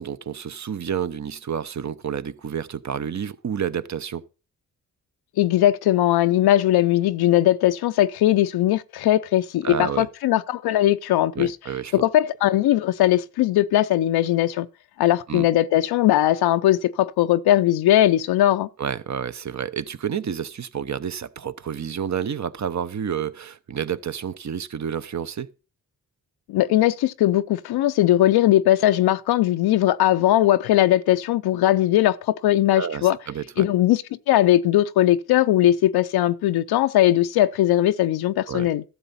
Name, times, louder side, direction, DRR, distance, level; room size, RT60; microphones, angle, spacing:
voice 1, 0.0-4.2 9.6-10.1 11.3-12.0 15.3-15.5 18.8-25.5 32.7-33.7 38.5-38.7, right 8 dB, 50° right, 0.8 m, -29 dB
voice 2, 5.4-11.5 11.9-14.7 15.0-18.7 26.5-33.2 33.6-38.8, left 13 dB, 85° left, 0.5 m, -19 dB
12.0 x 7.0 x 4.1 m
cardioid pair, 50°, 37 cm